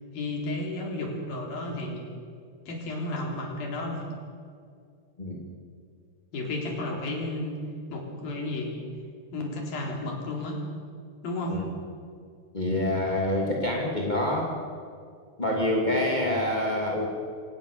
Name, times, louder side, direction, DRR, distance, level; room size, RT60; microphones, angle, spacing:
voice 1, 0.1-2.1 2.7-4.0 6.3-7.6 7.9-8.8 9.3-10.6 11.2-11.6, left 2 dB, 45° left, 0 dB, 5.2 m, -32 dB
voice 2, 12.5-14.5 15.4-17.1, left 1 dB, 20° left, -2 dB, 1.0 m, -26 dB
26.0 x 18.5 x 6.8 m, 2.2 s
omnidirectional pair, 5.9 m